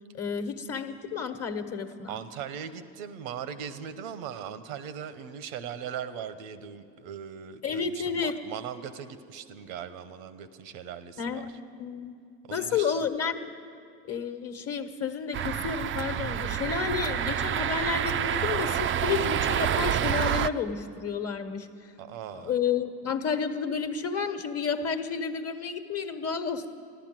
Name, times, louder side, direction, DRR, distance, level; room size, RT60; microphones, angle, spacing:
voice 1, 0.1-2.2 7.6-8.3 11.2-11.5 11.8-12.1 12.5-13.5 14.0-21.9 22.3-26.7, left 6 dB, 35° left, 8 dB, 1.2 m, -31 dB
voice 2, 2.1-11.5 12.4-13.1 22.0-22.5, right 8 dB, 80° right, 12 dB, 0.9 m, -39 dB
sound 1, 15.3-20.5, right 9 dB, 30° right, 0.4 m, -28 dB
14.0 x 11.5 x 7.5 m, 2.4 s
hypercardioid pair, 70°, 41 cm